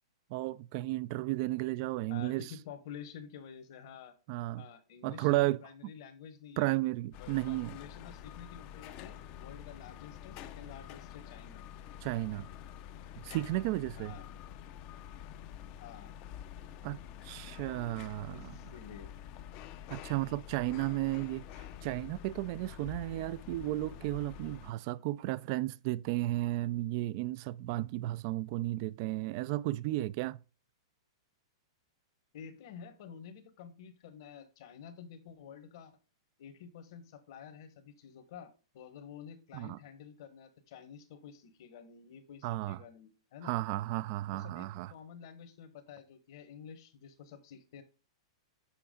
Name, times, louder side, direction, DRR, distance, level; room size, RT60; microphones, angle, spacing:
voice 1, 0.3-2.4 4.3-4.6 5.0-5.9 6.6-7.8 12.0-12.5 13.2-14.2 16.8-17.0 17.2-18.6 19.9-30.4 39.5-39.8 42.4-42.8 43.4-44.9, right 17 dB, 50° right, 0.4 m, -33 dB
voice 2, 2.1-4.1 4.6-6.8 7.2-11.6 13.9-14.3 15.8-16.1 18.3-19.1 32.3-35.9 36.4-43.5 44.3-47.8, left 7 dB, 60° left, 1.3 m, -50 dB
sound 1, 7.1-24.7, left 10 dB, 45° left, 0.6 m, -48 dB
7.1 x 4.8 x 3.8 m
hypercardioid pair, 120°, 3 cm